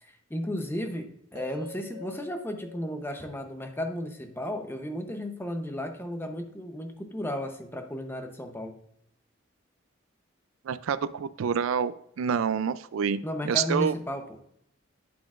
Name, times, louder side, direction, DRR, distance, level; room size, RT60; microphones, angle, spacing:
voice 1, 0.0-8.8 13.2-14.4, left 1 dB, 10° left, 6 dB, 0.7 m, -34 dB
sound 1, 1.4-5.5, left 3 dB, 60° right, 1.8 m, -47 dB
voice 2, 10.6-13.9, right 7 dB, 80° right, 16 dB, 0.4 m, -28 dB
8.6 x 7.7 x 2.4 m, 0.72 s
head